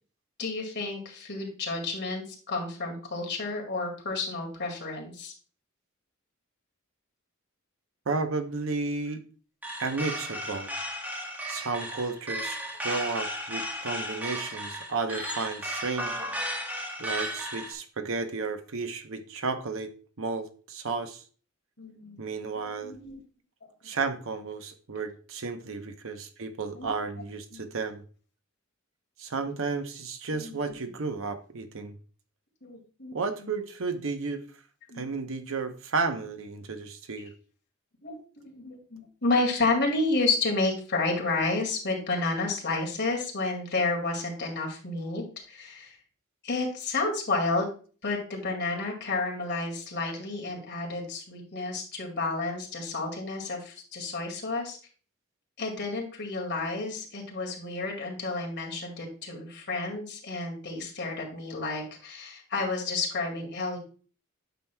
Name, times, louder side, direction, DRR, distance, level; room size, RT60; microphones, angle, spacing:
voice 1, 0.4-5.3 21.8-22.2 22.6-23.2 25.7-25.8 26.7-26.9 27.5-27.6 30.3-30.5 32.6-33.1 34.9-35.1 38.0-38.2 38.4-46.0 46.4-47.7 48.0-54.8 55.6-63.8, left 3 dB, 55° left, 0 dB, 2.1 m, -31 dB
voice 2, 8.1-9.2 9.8-10.7 11.5-16.2 17.0-19.9 20.2-21.2 22.2-22.9 23.8-28.0 29.2-31.9 33.1-34.4 35.0-37.3, right 4 dB, 65° right, 8 dB, 0.8 m, -33 dB
sound 1, 9.6-17.7, equal, 10° right, 1.2 m, -35 dB
9.1 x 6.0 x 2.2 m, 0.40 s
head